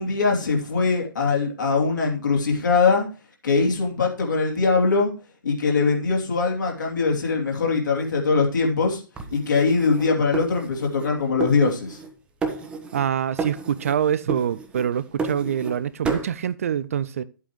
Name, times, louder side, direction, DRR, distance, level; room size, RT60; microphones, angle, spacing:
voice 1, 0.0-3.1 3.4-5.1 5.4-9.0 9.3-12.0, left 4 dB, 60° left, 3.0 m, -22 dB
sound 1, 9.2-11.1 11.4-12.1 12.4-13.1 13.4-14.0 14.3-15.8 16.0-16.3, right 4 dB, 10° right, 0.9 m, -31 dB
voice 2, 12.9-17.2, right 9 dB, 40° right, 0.4 m, -25 dB
11.0 x 8.1 x 3.1 m
figure-of-eight pair, 130°, 12 cm